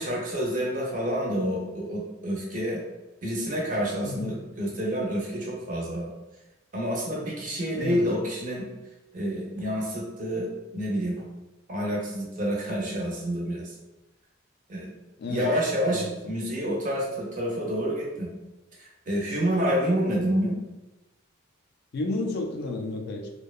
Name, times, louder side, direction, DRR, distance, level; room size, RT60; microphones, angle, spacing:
voice 1, 0.0-2.8 3.2-6.1 6.7-8.7 9.1-11.2 11.7-13.7 14.7-14.9 15.3-18.3 18.8-20.6, equal, 40° right, -2 dB, 0.6 m, -28 dB
voice 2, 4.0-4.3 7.8-8.0 15.2-15.5 15.9-16.1 21.9-23.3, left 2 dB, 50° left, 3 dB, 0.3 m, -31 dB
2.7 x 2.1 x 2.3 m, 1.0 s
head